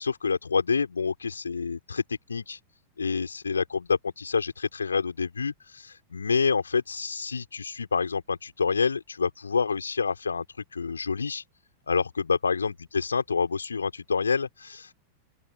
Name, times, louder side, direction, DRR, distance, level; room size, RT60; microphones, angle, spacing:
voice 1, 0.0-2.6 3.0-10.4 10.7-11.4 11.9-14.9, left 5 dB, 75° left, 3.8 m, -28 dB
open air
figure-of-eight pair, 90°, 0 cm